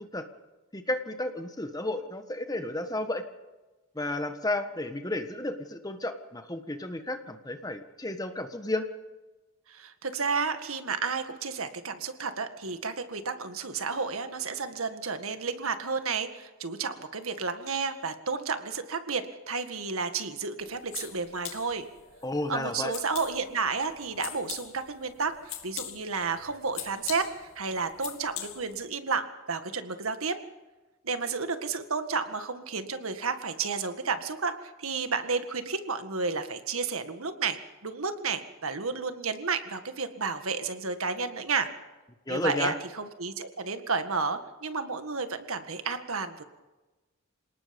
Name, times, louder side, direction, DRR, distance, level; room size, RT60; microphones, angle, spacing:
voice 1, 0.7-3.2 3.9-8.9 22.2-22.9 42.3-42.8, left 1 dB, 20° left, 7 dB, 1.6 m, -32 dB
voice 2, 9.7-21.9 22.5-25.3 25.6-27.3 27.6-30.4 31.0-37.6 37.8-41.7 42.3-46.4, right 4 dB, 90° right, 8 dB, 1.9 m, -32 dB
sound 1, 20.6-28.9, left 11 dB, 75° left, 2.5 m, -43 dB
27.5 x 19.0 x 5.4 m, 1.1 s
head